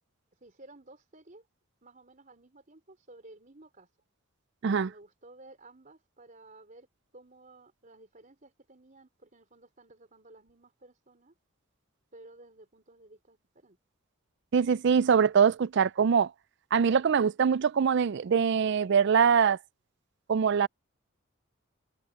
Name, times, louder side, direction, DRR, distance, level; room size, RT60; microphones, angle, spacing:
voice 1, 0.3-1.5 1.8-3.9 4.8-6.9 7.1-11.3 12.1-13.8, right 2 dB, 40° right, 4.0 m, -54 dB
voice 2, 14.5-16.3 16.7-19.6 20.3-20.7, right 6 dB, 55° right, 0.4 m, -23 dB
head